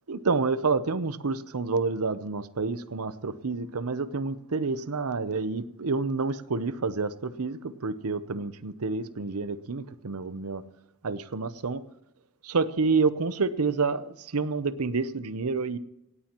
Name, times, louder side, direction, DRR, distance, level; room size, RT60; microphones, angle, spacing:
voice 1, 0.1-10.6 11.0-11.8 12.4-15.8, right 4 dB, 90° right, 14 dB, 0.8 m, -28 dB
17.5 x 16.5 x 3.0 m, 0.86 s
head